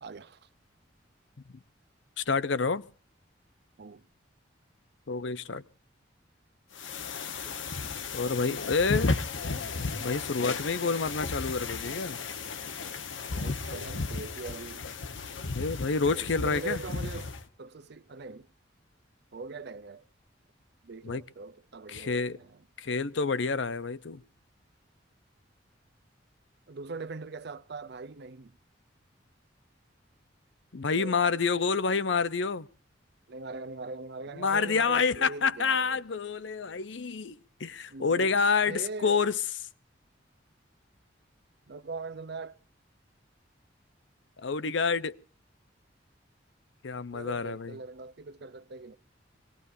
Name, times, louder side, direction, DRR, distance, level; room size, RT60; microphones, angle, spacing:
voice 1, 0.0-0.5 3.8-4.1 7.4-7.6 13.3-14.8 16.2-18.5 19.3-20.0 20.8-22.7 26.7-28.6 30.9-31.2 33.3-36.0 37.9-38.3 38.7-39.2 41.7-42.6 47.1-49.0, right 3 dB, 60° right, 0.6 m, -41 dB
voice 2, 2.2-2.8 5.1-5.6 8.1-9.2 10.0-12.2 15.5-16.8 21.0-21.2 21.9-22.4 22.8-24.2 30.7-32.7 34.4-39.3 44.4-45.2 46.8-47.8, left 5 dB, 70° left, 0.7 m, -28 dB
sound 1, 6.8-17.5, left 4 dB, 85° left, 1.2 m, -34 dB
25.0 x 19.5 x 2.7 m
head